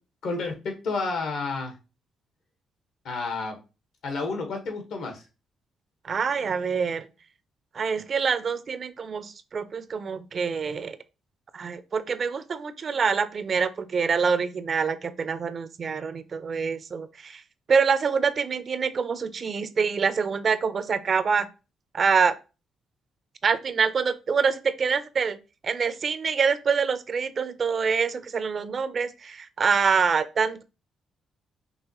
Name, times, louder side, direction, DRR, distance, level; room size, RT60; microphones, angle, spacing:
voice 1, 0.2-1.7 3.0-3.6 4.0-5.2, left 3 dB, 75° left, 1.3 m, -30 dB
voice 2, 6.0-7.1 7.7-11.0 11.5-17.4 17.7-21.5 21.9-22.4 23.4-25.4 25.6-30.6, right 5 dB, 45° right, 0.5 m, -25 dB
5.4 x 2.9 x 2.9 m
cardioid pair, 90°, 0 cm